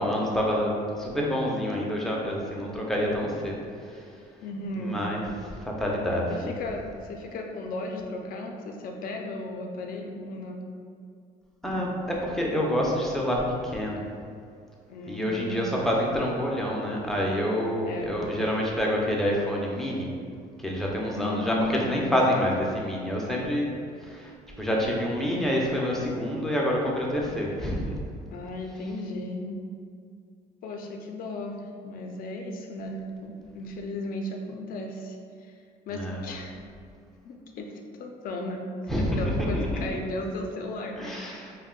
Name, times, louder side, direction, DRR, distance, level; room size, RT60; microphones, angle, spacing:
voice 1, 0.0-4.0 4.8-5.2 5.6-6.6 11.6-11.9 12.2-14.0 15.0-20.1 20.6-23.7 24.0-28.0 35.9-36.2 38.9-39.8 41.0-41.6, equal, ahead, -3 dB, 0.5 m, -27 dB
voice 2, 4.4-5.2 6.3-10.7 14.9-15.6 17.8-18.1 21.1-22.1 28.3-29.6 30.6-35.5 35.9-36.5 37.2-38.6 39.2-41.5, left 2 dB, 55° left, 2 dB, 0.4 m, -35 dB
2.5 x 2.1 x 3.7 m, 2.3 s
cardioid pair, 110°, 17 cm